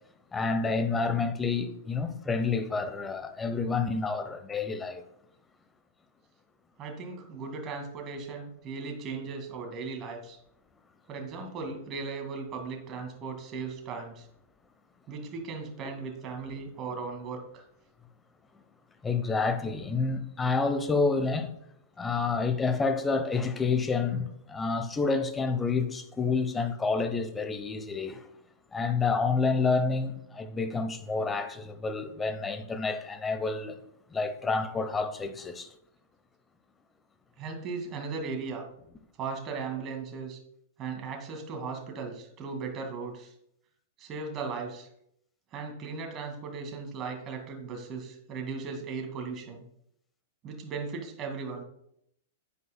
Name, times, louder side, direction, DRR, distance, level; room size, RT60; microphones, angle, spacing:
voice 1, 0.3-5.0 19.0-21.5 22.0-28.3 28.7-33.8 34.1-35.7, left 4 dB, 15° left, 0.8 m, -29 dB
voice 2, 6.8-10.4 11.1-14.3 15.1-17.6 37.4-38.7 39.2-40.4 40.8-43.3 44.0-44.9 45.5-49.6 50.4-51.6, right 4 dB, 30° right, 2.0 m, -37 dB
9.2 x 8.5 x 2.2 m
figure-of-eight pair, 100°, 0 cm